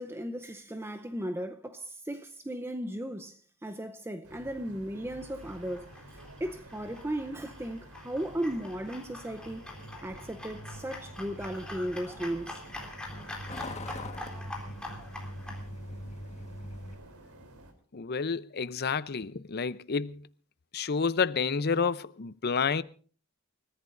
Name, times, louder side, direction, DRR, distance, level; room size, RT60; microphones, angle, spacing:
voice 1, 0.0-5.9 6.4-9.6 10.0-12.5, right 1 dB, 10° right, 0.7 m, -36 dB
sound 1, 4.2-17.7, right 1 dB, 85° right, 3.4 m, -51 dB
sound 2, 5.1-15.6, left 2 dB, 5° left, 3.9 m, -45 dB
Truck, 9.3-16.9, left 1 dB, 30° left, 1.4 m, -43 dB
voice 2, 17.9-20.2 20.7-22.8, left 5 dB, 45° left, 0.6 m, -29 dB
28.5 x 14.5 x 2.6 m
head